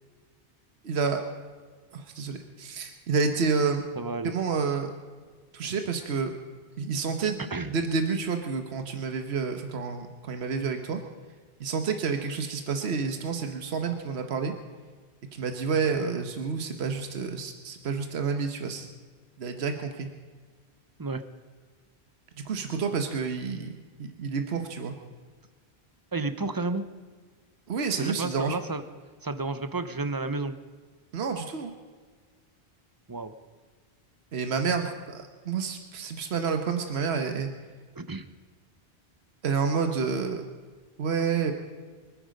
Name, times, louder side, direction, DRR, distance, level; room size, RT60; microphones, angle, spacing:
voice 1, 0.8-1.2 1.9-3.8 4.2-4.9 5.5-6.3 6.8-7.4 7.7-11.0 11.6-14.5 15.3-18.9 19.4-20.1 22.4-24.9 27.7-28.6 31.1-31.7 34.3-37.5 39.4-40.4 41.0-41.5, right 5 dB, 75° right, 6 dB, 1.3 m, -29 dB
voice 2, 4.0-4.3 7.2-7.7 21.0-21.2 22.7-23.0 26.1-26.9 28.0-28.8 29.2-30.6 33.1-33.4 38.0-38.3, right 3 dB, 20° right, 11 dB, 0.8 m, -32 dB
24.5 x 9.7 x 5.2 m, 1.5 s
omnidirectional pair, 1.1 m